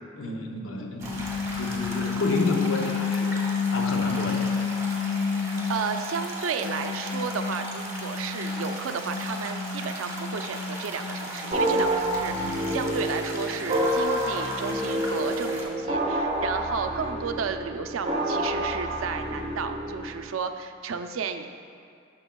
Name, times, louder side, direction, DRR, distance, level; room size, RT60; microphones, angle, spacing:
voice 1, 0.2-1.3 1.5-3.4 3.7-4.6, left 2 dB, 90° left, 1 dB, 0.8 m, -30 dB
sound 1, 1.0-6.3 6.6-12.8, left 5 dB, 60° left, 0.3 m, -30 dB
sound 2, 1.0-15.6, right 1 dB, 15° right, 1.0 m, -37 dB
voice 2, 5.7-21.5, right 6 dB, 85° right, 7 dB, 0.4 m, -33 dB
sound 3, 11.5-20.2, right 1 dB, 30° right, 0.6 m, -28 dB
9.8 x 6.3 x 2.2 m, 2.3 s
head